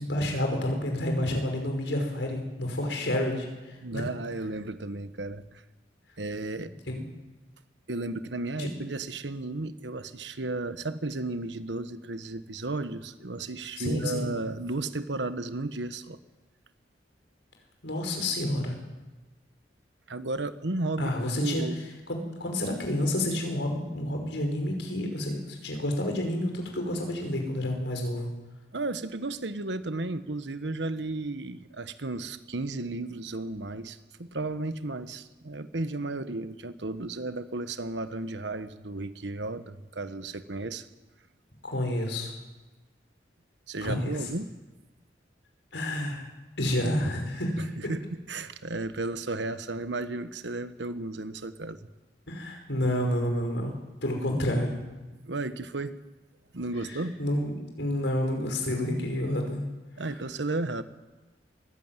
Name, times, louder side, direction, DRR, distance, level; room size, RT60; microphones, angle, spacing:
voice 1, 0.0-4.0 6.9-7.0 8.6-8.7 13.8-14.3 17.8-18.8 21.0-21.6 22.1-28.3 41.6-42.3 43.8-44.1 45.7-46.3 46.6-47.7 52.3-54.7 57.2-59.6, left 1 dB, 80° left, 3 dB, 5.4 m, -29 dB
voice 2, 3.8-5.6 6.2-6.7 7.9-16.2 20.1-21.8 28.7-40.9 43.7-44.5 47.6-51.8 55.2-56.0 56.5-57.2 60.0-60.8, right 2 dB, 75° right, 12 dB, 1.3 m, -34 dB
22.5 x 15.5 x 9.1 m, 1.2 s
head